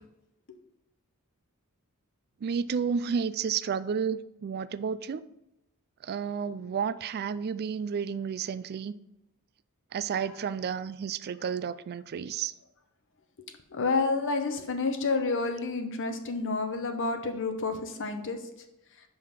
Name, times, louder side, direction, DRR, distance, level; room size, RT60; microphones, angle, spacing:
voice 1, 2.4-5.2 6.0-8.9 9.9-12.5, right 6 dB, 45° right, 16 dB, 0.3 m, -31 dB
voice 2, 13.7-18.4, left 3 dB, 60° left, 6 dB, 0.8 m, -29 dB
5.7 x 5.1 x 5.7 m, 0.89 s
head